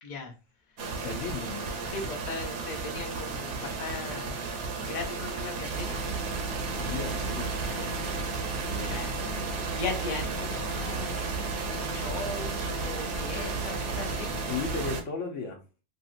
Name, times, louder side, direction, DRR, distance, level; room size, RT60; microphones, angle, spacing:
voice 1, 0.0-0.3 1.9-4.5 4.8-6.0 7.6-8.2 8.8-9.2 9.8-11.4 11.6-14.3, left 3 dB, 40° left, 0.7 m, -38 dB
sound 1, 0.8-15.0, right 4 dB, 70° right, 0.9 m, -33 dB
voice 2, 1.0-1.9 6.6-7.5 8.6-9.5 14.5-15.6, left 5 dB, 70° left, 1.1 m, -36 dB
2.9 x 2.8 x 2.4 m
omnidirectional pair, 1.4 m